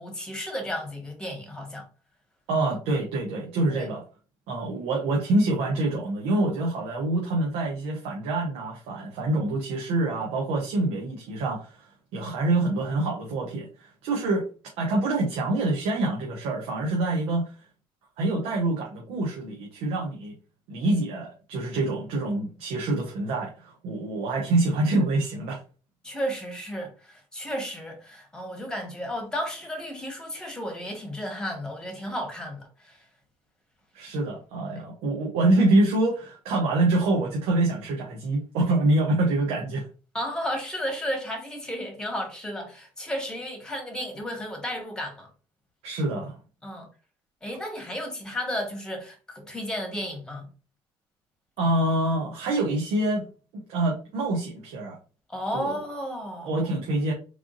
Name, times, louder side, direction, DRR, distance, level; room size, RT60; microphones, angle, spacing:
voice 1, 0.0-1.9 3.7-3.9 26.0-33.0 34.7-34.8 40.1-45.3 46.6-46.9 47.4-50.5 55.3-56.5, equal, 5° left, 1.6 m, -33 dB
voice 2, 2.5-4.0 4.5-14.5 14.8-17.5 18.2-20.3 20.7-25.6 33.9-39.9 45.8-46.4 51.6-53.2 53.5-55.0 55.5-55.7 56.4-57.1, right 2 dB, 90° right, 0.9 m, -26 dB
3.6 x 3.3 x 2.6 m
cardioid pair, 100°, 10 cm